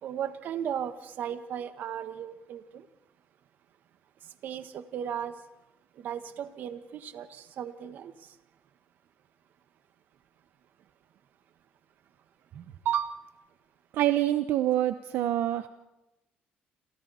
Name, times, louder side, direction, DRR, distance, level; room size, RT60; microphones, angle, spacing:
voice 1, 0.0-2.9 4.4-5.4 6.0-8.1 12.5-13.2, right 9 dB, 60° right, 10 dB, 1.5 m, -35 dB
voice 2, 13.9-15.7, right 13 dB, 80° right, 10 dB, 0.9 m, -26 dB
28.5 x 28.5 x 4.3 m, 0.96 s
cardioid pair, 145°, 4 cm